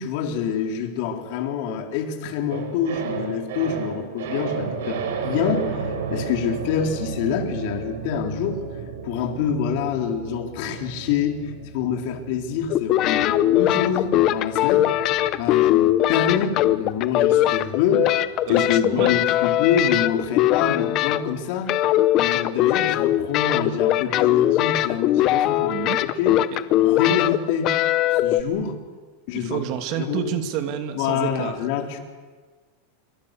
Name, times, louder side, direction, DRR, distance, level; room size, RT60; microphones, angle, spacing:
voice 1, 0.0-8.6 9.0-11.4 11.7-14.9 15.4-18.0 18.5-21.7 22.1-25.7 26.2-26.4 26.7-27.7 28.1-28.8 29.3-29.6 30.0-30.3 31.0-32.0, left 7 dB, 50° left, 3 dB, 4.0 m, -26 dB
sound 1, 2.5-18.8 19.1-19.2, right 5 dB, 80° right, 5.2 m, -34 dB
sound 2, 12.7-21.4 21.7-28.4, left 14 dB, 35° left, 0.9 m, -20 dB
voice 2, 18.5-19.2 25.7-26.0 29.3-31.5, right 9 dB, 45° right, 7 dB, 2.6 m, -29 dB
27.0 x 24.0 x 6.9 m, 1.4 s
supercardioid pair, 160°, 0 cm